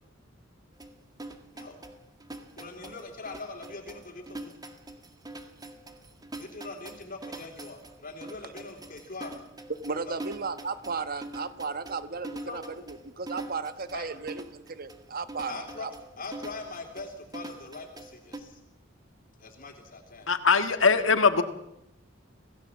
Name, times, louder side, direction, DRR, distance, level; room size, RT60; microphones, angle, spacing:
sound 1, 0.8-18.4, right 1 dB, 20° right, 2.0 m, -43 dB
voice 1, 2.6-4.6 6.4-9.4 9.9-10.2 12.5-12.6 13.9-14.1 15.5-15.9 16.2-18.6 19.4-20.3 20.8-21.2, left 3 dB, 45° left, 3 dB, 3.3 m, -42 dB
voice 2, 9.8-15.9, right 4 dB, 50° right, 12 dB, 1.3 m, -35 dB
voice 3, 20.3-21.4, left 5 dB, 75° left, 9 dB, 1.7 m, -21 dB
26.5 x 17.5 x 7.4 m, 0.85 s
head